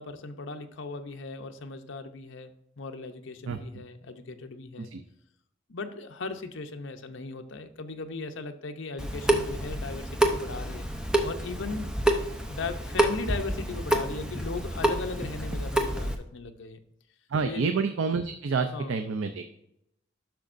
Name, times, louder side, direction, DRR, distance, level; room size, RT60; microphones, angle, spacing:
voice 1, 0.0-2.5 2.8-4.9 5.7-10.9 11.2-12.0 12.5-16.8 17.4-17.7 18.7-18.9, left 3 dB, 70° left, 7 dB, 0.7 m, -37 dB
Water tap faucet / Sink (filling or washing) / Drip, 9.0-16.2, right 1 dB, 5° right, 0.5 m, -28 dB
voice 2, 17.3-19.5, right 4 dB, 75° right, 7 dB, 0.5 m, -28 dB
10.5 x 6.1 x 2.5 m, 0.79 s
head